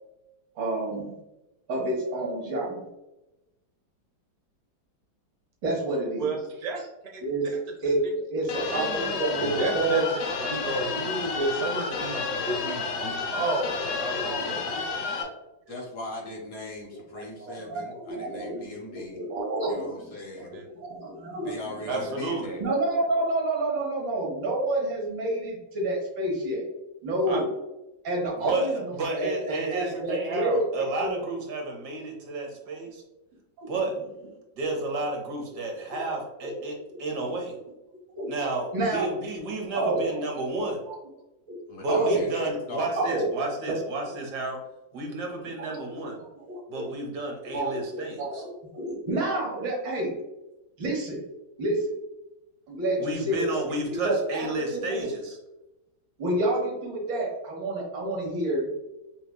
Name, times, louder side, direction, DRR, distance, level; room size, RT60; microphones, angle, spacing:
voice 1, 0.6-1.2 1.7-2.9 5.6-6.4 7.2-7.5 7.8-10.0 11.3-11.5 13.3-13.5 14.2-14.5 14.9-15.3 15.7-15.8 17.4-20.4 20.7-22.1 22.5-26.6 27.0-27.5 28.0-28.9 29.2-30.6 31.0-31.2 33.6-33.7 35.9-36.1 36.4-37.0 38.2-38.3 38.7-39.1 39.7-40.2 41.5-41.6 41.9-42.2 43.0-43.3 43.7-43.8 45.4-45.7 46.4-46.8 47.5-50.2 50.8-51.2 51.6-51.9 52.7-53.6 54.0-55.1 56.2-58.7, right 2 dB, 80° right, -2 dB, 2.1 m, -29 dB
sound 1, 8.5-15.2, left 4 dB, 75° left, 1.4 m, -30 dB
voice 2, 8.7-9.1 9.4-14.6 20.5-20.6 27.3-27.4, right 3 dB, 45° right, -1 dB, 0.5 m, -32 dB
voice 3, 15.7-19.2 19.7-20.5 21.4-22.6 41.7-42.9, left 2 dB, 60° left, -1 dB, 1.1 m, -39 dB
voice 4, 21.9-22.5 28.4-33.0 33.7-34.0 34.6-37.6 38.3-40.8 41.8-44.6 44.9-46.2 46.7-48.4 53.0-55.4, right 2 dB, 65° right, 1 dB, 1.4 m, -31 dB
5.8 x 3.0 x 2.2 m, 0.95 s
omnidirectional pair, 2.0 m